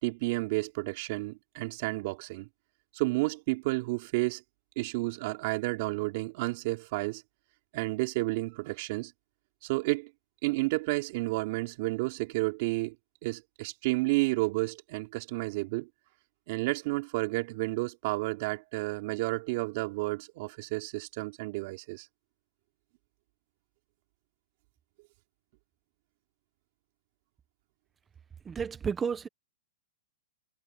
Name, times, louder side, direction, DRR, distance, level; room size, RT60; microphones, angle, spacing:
voice 1, 0.0-2.5 2.9-4.4 4.8-7.2 7.7-9.1 9.6-10.1 10.4-13.0 13.2-15.9 16.5-22.1, right 22 dB, 45° right, 3.7 m, -31 dB
voice 2, 28.4-29.3, right 6 dB, 15° right, 1.2 m, -31 dB
hypercardioid pair, 155°, 0 cm